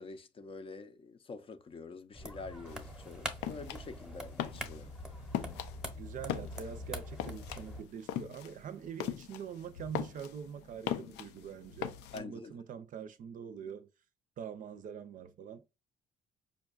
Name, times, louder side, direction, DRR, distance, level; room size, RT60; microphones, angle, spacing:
voice 1, 0.0-4.9 12.1-12.5, left 4 dB, 30° left, 0.6 m, -46 dB
sound 1, 2.1-7.8, equal, 5° right, 0.9 m, -44 dB
sound 2, 2.7-12.2, left 10 dB, 85° left, 0.5 m, -40 dB
voice 2, 6.0-13.9 14.4-15.6, right 7 dB, 50° right, 0.5 m, -44 dB
5.2 x 2.2 x 2.3 m
cardioid pair, 110°, 17 cm